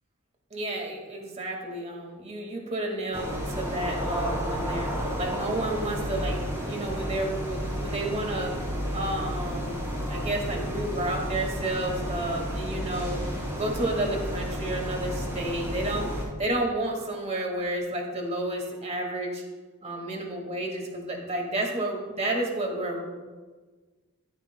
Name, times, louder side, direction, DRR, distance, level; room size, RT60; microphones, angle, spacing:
voice 1, 0.5-8.6 8.9-16.1 16.4-19.4 19.8-23.2, right 1 dB, 30° right, 1 dB, 1.9 m, -31 dB
sound 1, 3.1-16.2, equal, 15° right, 3.6 m, -32 dB
13.5 x 13.5 x 2.3 m, 1.4 s
head